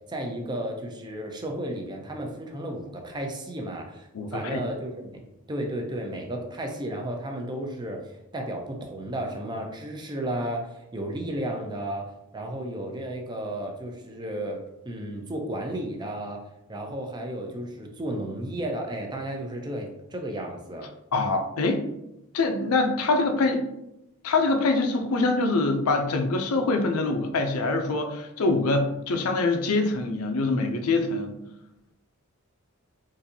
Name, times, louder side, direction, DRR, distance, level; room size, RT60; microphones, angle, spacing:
voice 1, 0.1-8.0 8.3-12.1 12.3-16.4 16.7-20.9, right 1 dB, 20° right, 2 dB, 0.4 m, -33 dB
voice 2, 4.1-4.6 21.1-21.9 22.3-23.6 24.2-31.4, left 3 dB, 80° left, 5 dB, 0.5 m, -24 dB
3.9 x 2.5 x 2.7 m, 0.86 s
head